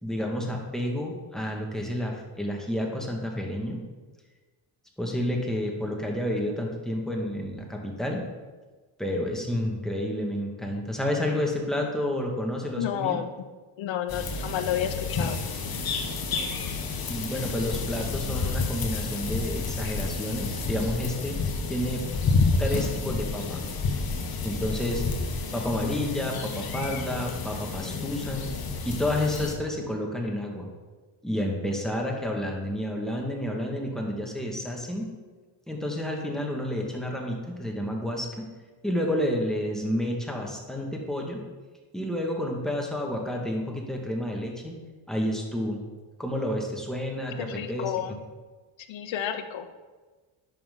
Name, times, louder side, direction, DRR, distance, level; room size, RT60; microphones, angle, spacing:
voice 1, 0.0-3.8 5.0-8.2 9.0-13.2 17.1-21.4 21.7-22.0 22.6-23.6 24.4-25.0 25.5-28.5 28.8-30.7 31.2-35.1 35.7-38.3 38.8-41.4 41.9-44.8 45.1-45.8 46.2-47.9, left 1 dB, ahead, -1 dB, 1.9 m, -30 dB
voice 2, 12.7-13.3 13.8-15.4 47.4-48.2 48.9-49.7, left 10 dB, 65° left, 9 dB, 0.9 m, -30 dB
sound 1, 14.1-29.5, left 4 dB, 45° left, 1.2 m, -30 dB
10.0 x 5.8 x 3.9 m, 1.3 s
cardioid pair, 80°, 49 cm